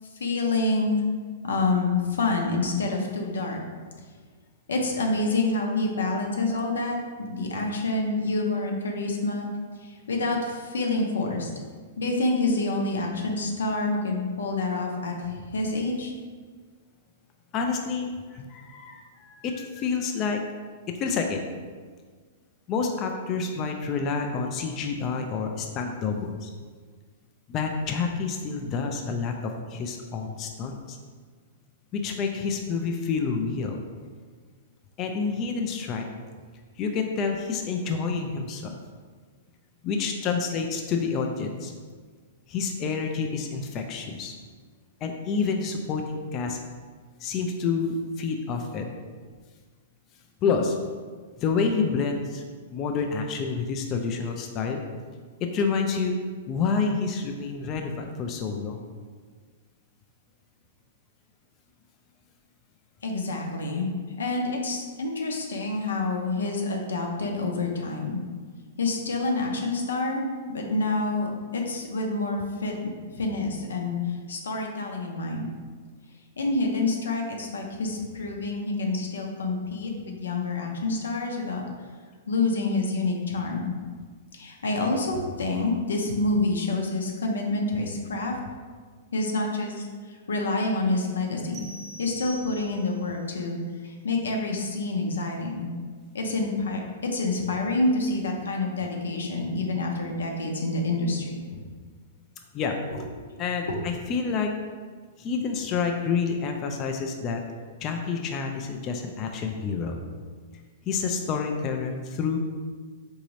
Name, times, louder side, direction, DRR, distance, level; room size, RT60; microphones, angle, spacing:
voice 1, 0.2-1.0 1.5-3.6 4.7-9.5 9.8-11.5 12.0-16.1 63.0-63.9 64.2-68.2 68.8-72.7 73.2-75.5 76.4-81.6 82.3-83.8 84.3-88.4 89.1-91.7 92.0-93.6 93.8-95.7 96.1-101.4 102.9-103.0, left 2 dB, 90° left, 1 dB, 0.6 m, -27 dB
voice 2, 17.5-20.4 21.0-21.4 22.7-26.5 27.5-31.0 31.9-33.8 35.0-36.1 36.8-38.7 39.8-41.7 42.5-44.3 45.0-46.6 47.2-48.9 50.4-50.8 51.4-54.8 55.5-56.2 56.5-58.8 102.5-102.8 103.4-104.5 105.2-107.4 107.8-110.0 110.8-112.4, left 5 dB, 35° left, 3 dB, 0.3 m, -28 dB
sound 1, 91.5-93.1, equal, 35° right, 0.4 m, -43 dB
3.9 x 2.7 x 3.1 m, 1.6 s
hypercardioid pair, 135°, 0 cm